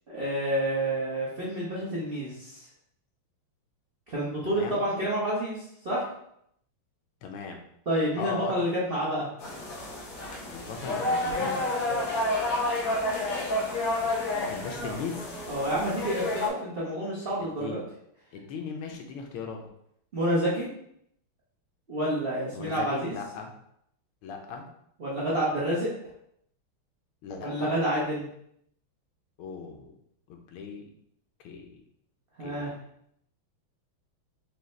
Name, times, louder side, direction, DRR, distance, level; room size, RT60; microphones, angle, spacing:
voice 1, 0.1-2.7 4.1-6.1 7.9-9.3 11.8-12.2 15.5-17.8 20.1-20.7 21.9-23.2 25.0-25.9 27.3-28.3 32.4-32.7, right 1 dB, 80° right, -7 dB, 0.5 m, -29 dB
voice 2, 4.4-4.8 7.2-7.6 8.1-8.5 10.5-11.6 14.5-15.3 17.6-17.8 18.3-19.7 22.5-23.5 24.2-24.6 27.2-27.7 29.4-29.9 30.3-30.8 31.4-31.8 32.4-32.8, left 5 dB, 80° left, 3 dB, 1.5 m, -38 dB
sound 1, 9.4-16.5, left 2 dB, 60° left, 0.9 m, -30 dB
4.9 x 2.6 x 3.2 m, 0.73 s
omnidirectional pair, 2.4 m